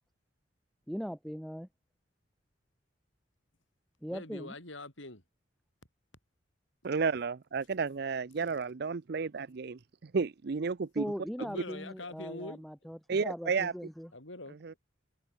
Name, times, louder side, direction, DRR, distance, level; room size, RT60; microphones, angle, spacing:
voice 1, 0.9-1.7 4.0-4.5 11.0-14.1, equal, ahead, 1.7 m, -40 dB
voice 2, 4.1-5.2 11.4-12.6 14.1-14.8, left 2 dB, 85° left, 7.8 m, -44 dB
voice 3, 6.8-11.1 13.1-13.7 14.6-14.7, right 5 dB, 55° right, 0.5 m, -32 dB
head